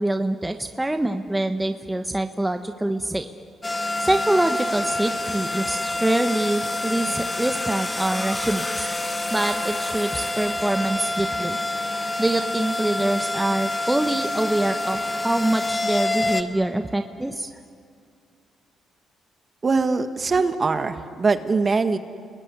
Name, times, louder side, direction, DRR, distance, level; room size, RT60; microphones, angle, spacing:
voice 1, 0.0-3.3 4.0-8.9 9.3-11.6 12.2-17.5, right 1 dB, 10° right, 6 dB, 1.2 m, -25 dB
sound 1, 3.6-16.4, left 2 dB, 20° left, 1.8 m, -27 dB
voice 2, 19.6-22.0, right 4 dB, 35° right, 8 dB, 1.7 m, -22 dB
30.0 x 20.5 x 9.8 m, 2.3 s
cardioid pair, 90°, 0 cm